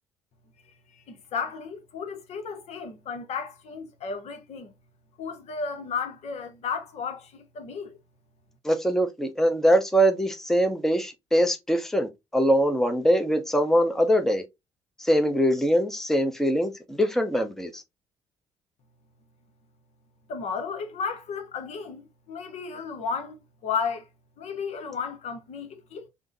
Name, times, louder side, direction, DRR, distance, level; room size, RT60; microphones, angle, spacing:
voice 1, 0.9-4.7 5.2-8.0 20.3-23.4 23.6-24.1 24.4-26.1, left 5 dB, 50° left, 0.8 m, -33 dB
voice 2, 8.6-14.4 15.0-17.8, equal, 5° left, 0.7 m, -23 dB
3.5 x 2.1 x 3.8 m
figure-of-eight pair, 45°, 14 cm